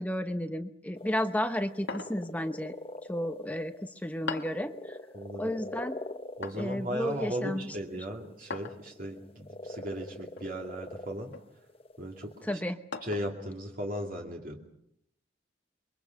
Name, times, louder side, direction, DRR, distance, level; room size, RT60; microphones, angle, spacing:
voice 1, 0.0-2.7 3.1-5.0 5.4-6.0 6.5-7.7 12.4-12.8, equal, 10° left, 6 dB, 1.0 m, -32 dB
sound 1, 1.0-7.3 8.4-12.5, left 1 dB, 30° left, 1.3 m, -43 dB
sound 2, 1.9-2.4 4.3-4.7 6.4-6.8 8.5-8.9 10.4-10.7 11.3-11.5 12.9-13.4, left 4 dB, 85° left, 1.8 m, -39 dB
voice 2, 5.1-5.6 6.4-11.4 12.0-12.6 13.0-14.6, equal, 50° right, 0 dB, 2.7 m, -37 dB
29.0 x 24.0 x 6.0 m, 0.75 s
head